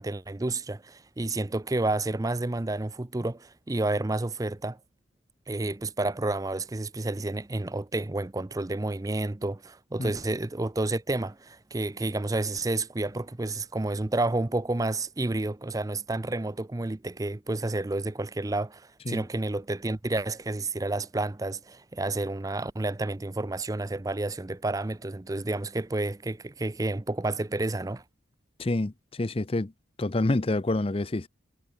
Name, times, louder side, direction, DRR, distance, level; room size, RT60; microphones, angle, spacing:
voice 1, 0.0-4.8 5.5-28.0, right 2 dB, 15° right, 0.5 m, -30 dB
voice 2, 28.6-29.7 30.0-31.3, left 2 dB, 25° left, 0.6 m, -27 dB
head